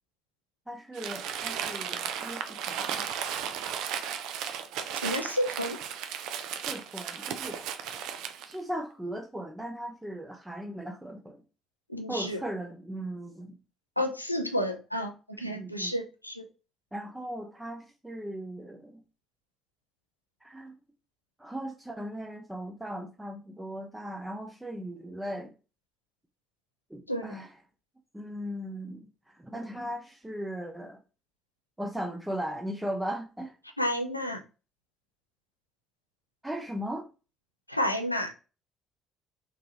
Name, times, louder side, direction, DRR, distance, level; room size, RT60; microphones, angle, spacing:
voice 1, 0.7-3.1 6.7-7.6 8.4-11.4 12.1-13.6 15.4-15.9 16.9-18.9 20.4-20.8 21.4-25.5 26.9-27.5 28.1-29.1 29.3-31.0 31.8-33.6 36.4-37.1, equal, 10° right, 0.6 m, -37 dB
Crumpling crinkling, 0.9-8.5, right 8 dB, 60° right, 0.4 m, -35 dB
voice 2, 5.0-5.8 11.9-12.4 14.0-16.5 27.1-27.4 33.8-34.4 37.7-38.3, equal, 90° left, 0.4 m, -31 dB
3.7 x 2.9 x 2.8 m
figure-of-eight pair, 50°, 0 cm